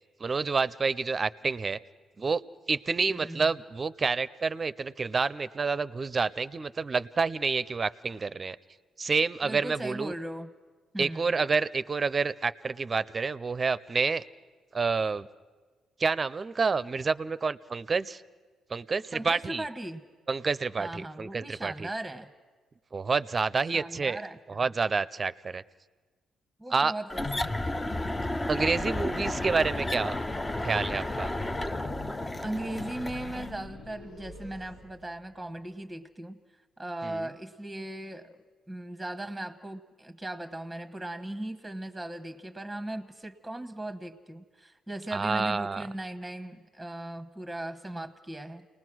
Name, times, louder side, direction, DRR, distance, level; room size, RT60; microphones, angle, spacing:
voice 1, 0.2-1.8 2.2-2.4 2.7-8.6 9.0-10.1 11.0-14.2 14.7-15.3 16.0-18.2 18.7-19.7 20.3-21.9 22.9-24.2 24.5-25.6 26.7-26.9 28.5-30.2 30.6-31.3 37.0-37.3 45.1-45.8, right 4 dB, 35° right, 16 dB, 0.6 m, -28 dB
voice 2, 3.1-3.5 9.4-10.5 10.9-11.3 19.1-20.0 20.8-22.3 23.7-24.7 26.6-27.6 32.4-36.4 36.8-38.4 38.7-48.7, right 1 dB, ahead, 9 dB, 1.2 m, -38 dB
sound 1, 27.1-33.5, left 1 dB, 15° left, 0.6 m, -32 dB
sound 2, 31.4-35.7, left 1 dB, 90° left, 1.8 m, -46 dB
29.0 x 19.5 x 6.2 m, 1.4 s
cardioid pair, 90°, 0 cm